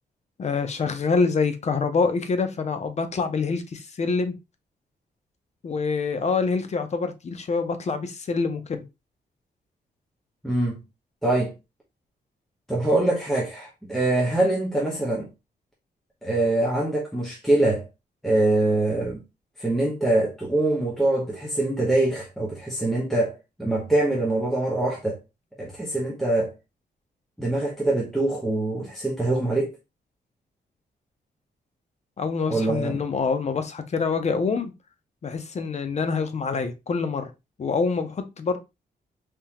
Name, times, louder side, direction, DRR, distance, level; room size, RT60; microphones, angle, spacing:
voice 1, 0.4-4.3 5.6-8.8 32.2-34.7 35.2-37.3 37.6-38.6, left 4 dB, 40° left, 0.6 m, -26 dB
voice 2, 10.4-10.8 11.2-11.5 12.7-15.3 16.2-17.9 18.2-19.2 19.6-25.2 25.6-26.5 27.4-29.7 32.5-33.0, right 2 dB, ahead, 0.9 m, -24 dB
3.6 x 2.8 x 2.8 m
wide cardioid pair, 120°, 17 cm